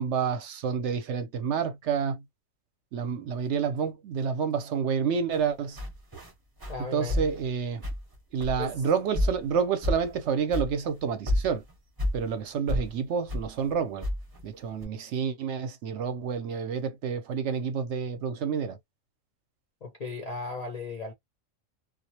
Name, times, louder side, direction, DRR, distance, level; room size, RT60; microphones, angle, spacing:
voice 1, 0.0-2.2 2.9-5.8 6.9-7.8 8.3-11.6 12.1-14.1 14.4-18.8, right 6 dB, 70° right, 0.8 m, -29 dB
sound 1, 5.3-5.4 5.8-6.3 6.6-6.8 7.1-7.5 7.8-8.1 8.4-8.8 9.1-9.6 9.8-10.2 10.5-10.7 11.0-11.1 11.3-12.2 12.7-12.9 13.3-13.5 14.0-14.5 14.8-14.9, left 1 dB, 20° right, 0.6 m, -30 dB
voice 2, 6.7-7.3 8.6-8.8 19.8-21.1, left 3 dB, 55° left, 0.4 m, -36 dB
2.3 x 2.0 x 2.7 m
omnidirectional pair, 1.4 m